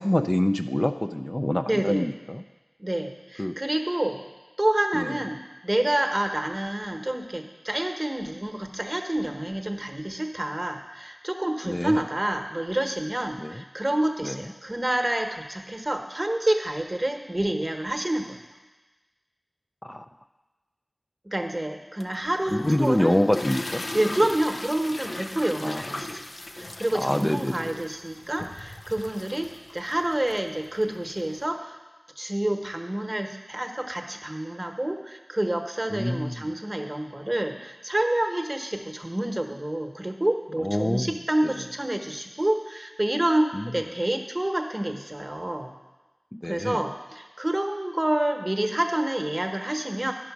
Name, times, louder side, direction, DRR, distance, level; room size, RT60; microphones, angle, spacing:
voice 1, 0.0-2.4 3.4-3.6 4.9-5.1 11.6-12.0 13.4-13.6 14.2-14.4 19.8-20.1 22.5-23.8 25.6-25.8 26.9-27.5 35.9-36.5 40.6-41.1 41.4-41.5 43.5-43.7 46.3-46.8, left 1 dB, 25° left, 7 dB, 0.4 m, -26 dB
voice 2, 1.7-2.1 2.8-4.2 4.6-18.4 21.2-23.2 23.9-26.2 26.5-29.5 29.7-31.8 32.2-45.7 46.5-50.1, right 1 dB, 35° right, 4 dB, 1.0 m, -28 dB
sound 1, 22.0-31.4, left 1 dB, 80° left, 0.5 m, -38 dB
11.5 x 5.0 x 6.0 m, 1.2 s
wide cardioid pair, 45°, 0 cm